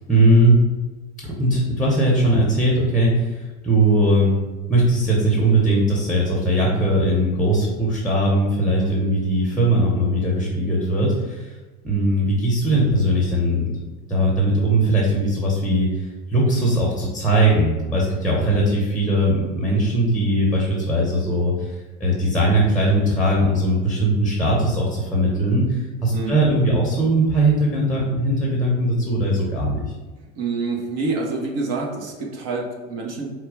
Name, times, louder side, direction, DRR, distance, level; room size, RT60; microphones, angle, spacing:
voice 1, 0.1-0.7 1.2-4.4 4.7-11.6 11.8-13.8 14.1-29.9, right 1 dB, ahead, -3 dB, 0.9 m, -19 dB
voice 2, 30.3-33.3, right 3 dB, 50° right, 0 dB, 1.2 m, -27 dB
4.5 x 2.3 x 4.8 m, 1.2 s
supercardioid pair, 120°, 33 cm